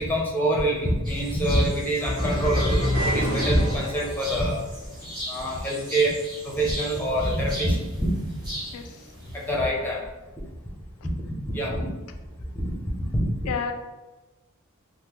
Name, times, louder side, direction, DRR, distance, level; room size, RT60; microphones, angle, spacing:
voice 1, 0.0-4.6 5.3-6.2 6.4-8.1 9.3-10.0 11.1-11.9 12.5-13.3, right 1 dB, 10° left, -3 dB, 0.6 m, -25 dB
sound 1, 1.0-9.5, equal, 20° right, 1.2 m, -38 dB
sound 2, 2.0-4.4, left 1 dB, 75° right, 0.9 m, -28 dB
sound 3, 2.9-4.4, right 1 dB, 45° right, 0.6 m, -32 dB
voice 2, 8.7-9.1 13.5-13.7, left 6 dB, 85° left, 6 dB, 0.3 m, -31 dB
3.5 x 2.0 x 2.9 m, 1.1 s
head